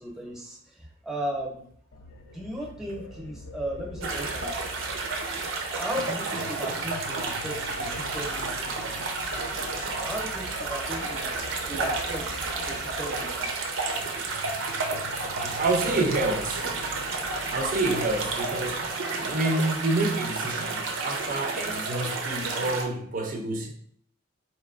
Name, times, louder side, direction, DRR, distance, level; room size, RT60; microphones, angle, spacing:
voice 1, 0.0-1.7 2.3-4.6 5.7-8.7 10.0-11.3 11.7-12.2 12.7-13.5, right 1 dB, ahead, -1 dB, 0.8 m, -36 dB
sound 1, 1.9-18.9, left 3 dB, 70° left, 0.4 m, -43 dB
sound 2, 4.0-22.9, right 3 dB, 85° right, 0.6 m, -31 dB
voice 2, 15.4-16.7 17.5-23.7, right 2 dB, 45° right, 2 dB, 0.5 m, -28 dB
4.3 x 3.2 x 2.4 m, 0.64 s
head